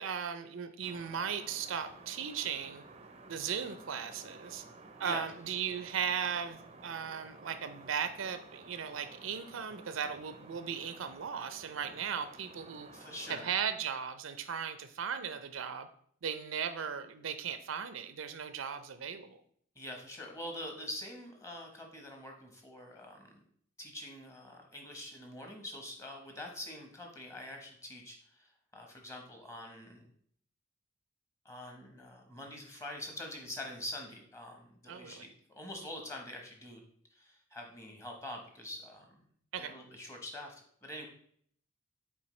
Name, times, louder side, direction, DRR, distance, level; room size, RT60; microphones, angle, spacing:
voice 1, 0.0-2.8 3.3-4.6 5.0-12.9 13.3-15.9 16.2-19.4 34.9-35.2 39.5-39.7, right 7 dB, 80° right, 10 dB, 0.5 m, -37 dB
sound 1, 0.8-13.5, right 3 dB, 30° right, 0.5 m, -53 dB
voice 2, 12.9-13.5 19.8-23.3 23.8-28.5 28.7-30.1 31.4-36.8 37.1-39.0 39.6-40.5 40.8-41.1, left 1 dB, 15° left, 2 dB, 1.0 m, -45 dB
7.1 x 4.5 x 3.1 m, 0.62 s
head